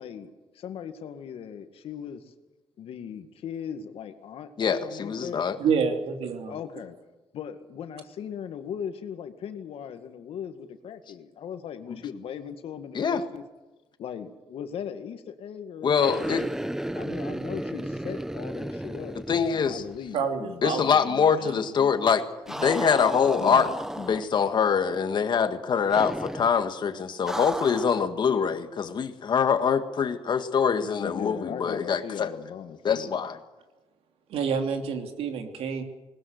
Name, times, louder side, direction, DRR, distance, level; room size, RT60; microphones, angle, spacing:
voice 1, 0.0-2.2 2.8-5.4 6.5-7.0 7.3-13.4 14.0-16.3 16.9-19.2 19.5-20.7 22.5-22.8 23.4-23.7 31.0-33.1, left 8 dB, 75° left, 8 dB, 2.0 m, -38 dB
voice 2, 4.6-5.6 12.9-13.2 15.8-16.4 19.3-19.8 20.6-22.2 22.6-23.7 24.0-32.3 32.8-33.4, left 6 dB, 50° left, 9 dB, 1.8 m, -24 dB
voice 3, 5.6-6.6 20.1-21.5 21.8-21.9 34.3-35.8, right 6 dB, 90° right, 5 dB, 3.1 m, -28 dB
sound 1, 15.9-20.1 20.3-20.4 22.5-24.5 25.9-26.6 27.3-28.1, right 1 dB, 5° right, 0.8 m, -34 dB
20.0 x 20.0 x 8.0 m, 1.1 s
cardioid pair, 120°, 10 cm